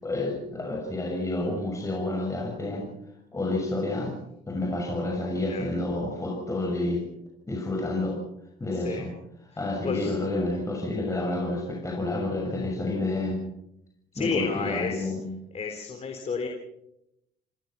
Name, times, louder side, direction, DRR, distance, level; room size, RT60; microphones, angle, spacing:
voice 1, 0.0-2.9 3.3-4.2 4.5-7.0 7.5-8.2 8.6-9.1 9.6-13.4 14.2-15.2, left 2 dB, 20° left, -1 dB, 6.6 m, -29 dB
voice 2, 14.1-15.1 15.5-16.5, left 5 dB, 40° left, 4 dB, 3.8 m, -31 dB
28.0 x 17.0 x 6.0 m, 0.80 s
cardioid pair, 110°, 17 cm